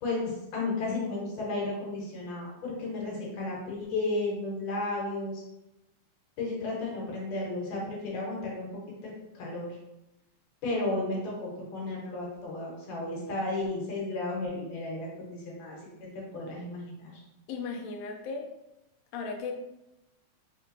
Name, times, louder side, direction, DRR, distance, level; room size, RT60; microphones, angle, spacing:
voice 1, 0.0-5.4 6.4-8.7 9.3-9.7 10.6-17.2, left 2 dB, 65° left, -3 dB, 2.2 m, -33 dB
voice 2, 17.5-18.5 19.1-19.5, left 4 dB, 85° left, 3 dB, 1.5 m, -36 dB
4.3 x 3.7 x 2.6 m, 0.94 s
omnidirectional pair, 3.4 m